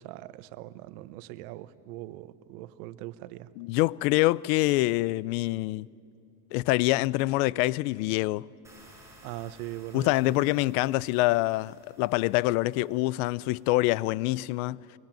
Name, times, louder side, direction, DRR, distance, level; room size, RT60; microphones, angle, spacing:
voice 1, 0.0-3.5 9.2-10.3, right 15 dB, 90° right, 1.1 m, -41 dB
voice 2, 3.6-5.9 6.5-8.5 9.9-14.8, left 19 dB, 85° left, 0.7 m, -25 dB
sound 1, 8.6-14.2, right 1 dB, 5° right, 6.7 m, -57 dB
24.0 x 24.0 x 9.0 m
cardioid pair, 125°, 43 cm